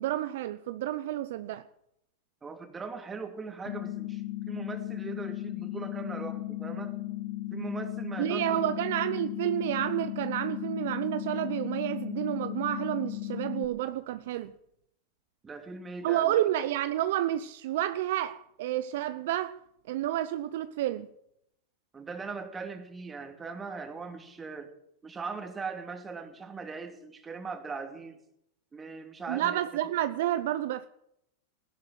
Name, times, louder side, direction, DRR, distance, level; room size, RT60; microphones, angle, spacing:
voice 1, 0.0-1.6 8.2-14.5 16.0-19.6 19.9-21.1 29.3-30.9, right 13 dB, 65° right, 0.6 m, -30 dB
voice 2, 2.4-7.0 7.5-8.7 15.4-16.5 21.9-24.7 25.0-28.2 28.7-29.6, right 4 dB, 20° right, 2.6 m, -40 dB
sound 1, 3.7-13.7, left 16 dB, 55° left, 2.1 m, -36 dB
16.0 x 11.0 x 7.7 m
hypercardioid pair, 100°, 0 cm